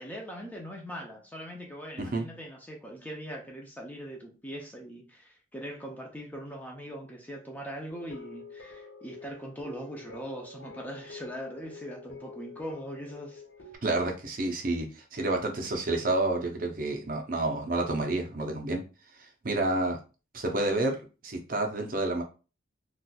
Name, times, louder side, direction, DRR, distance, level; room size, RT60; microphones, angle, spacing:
voice 1, 0.0-13.4, equal, 10° left, 0.5 m, -41 dB
sound 1, 7.9-13.8, left 3 dB, 70° left, 1.2 m, -47 dB
voice 2, 13.8-18.8 19.2-20.0 20.3-21.0 21.2-22.2, right 2 dB, 45° right, 0.6 m, -29 dB
4.1 x 2.4 x 2.3 m
head